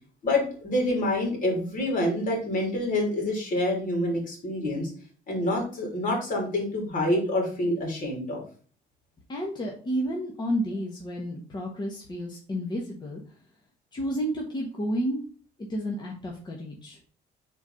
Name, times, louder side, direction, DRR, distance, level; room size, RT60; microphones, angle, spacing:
voice 1, 0.2-4.9 5.3-8.4, left 1 dB, 50° left, 0 dB, 3.3 m, -27 dB
voice 2, 9.3-13.2 13.9-15.2 15.7-17.0, equal, 25° left, -1 dB, 1.3 m, -31 dB
4.6 x 3.9 x 5.6 m, 0.43 s
cardioid pair, 110°, 17 cm